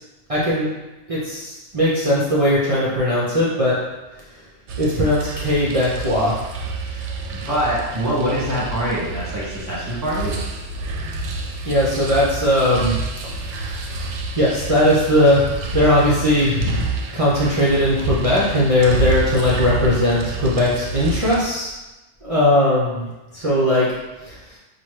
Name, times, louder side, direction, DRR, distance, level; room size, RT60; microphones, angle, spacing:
voice 1, 0.3-0.7 1.1-3.8 4.8-6.4 11.7-21.7 22.2-23.9 24.3-24.4, left 1 dB, 35° right, -7 dB, 0.6 m, -19 dB
sound 1, 4.7-21.4, right 3 dB, 75° right, 0.9 m, -29 dB
voice 2, 6.8-10.3, equal, 15° right, -8 dB, 1.5 m, -24 dB
5.7 x 2.5 x 3.1 m, 1.1 s
omnidirectional pair, 1.2 m